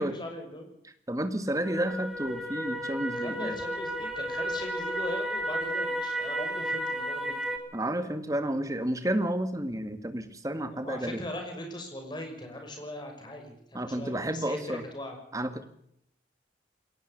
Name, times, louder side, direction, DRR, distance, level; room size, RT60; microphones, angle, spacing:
voice 1, 0.0-0.7 3.1-7.6 10.7-15.2, left 1 dB, 25° left, 4 dB, 5.9 m, -40 dB
voice 2, 0.8-3.6 7.7-11.2 13.7-14.8 15.3-15.7, right 1 dB, 20° right, 9 dB, 1.8 m, -31 dB
sound 1, 1.6-7.6, right 1 dB, ahead, 3.2 m, -32 dB
21.0 x 18.5 x 6.7 m, 0.72 s
head